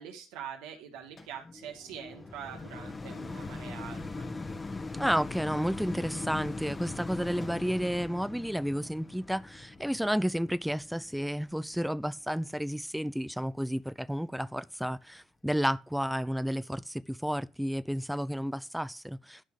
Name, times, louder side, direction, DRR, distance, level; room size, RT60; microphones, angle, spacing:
voice 1, 0.0-4.3, right 8 dB, 85° right, 2.5 m, -44 dB
sound 1, 1.2-12.4 13.0-13.1, left 3 dB, 30° left, 1.5 m, -41 dB
voice 2, 5.0-19.4, equal, ahead, 0.5 m, -31 dB
12.0 x 5.4 x 6.5 m
supercardioid pair, 60°, 0 cm